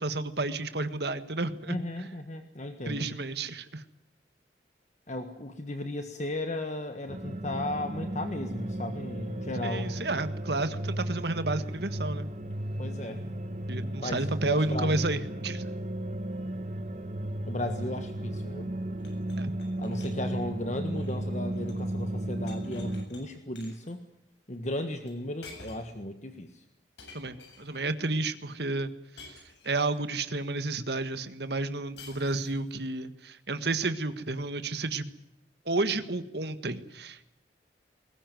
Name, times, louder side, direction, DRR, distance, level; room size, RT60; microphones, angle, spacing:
voice 1, 0.0-1.8 2.8-3.8 9.6-12.3 13.7-15.7 19.4-19.5 27.1-28.9 29.3-35.1 35.6-37.2, right 2 dB, 65° right, 10 dB, 1.7 m, -31 dB
voice 2, 1.7-3.1 5.1-9.9 12.8-13.2 14.0-15.2 17.5-18.7 19.8-24.0 24.5-26.6, left 1 dB, 40° left, 7 dB, 1.6 m, -35 dB
sound 1, 7.1-23.1, right 1 dB, 40° right, 1.4 m, -34 dB
sound 2, 19.0-21.9 22.2-23.2 23.6-23.9 25.1-25.2 25.4-26.0 27.0-27.8 29.2-30.0 32.0-32.7, left 3 dB, 75° left, 7.6 m, -51 dB
21.5 x 19.5 x 9.4 m, 0.85 s
head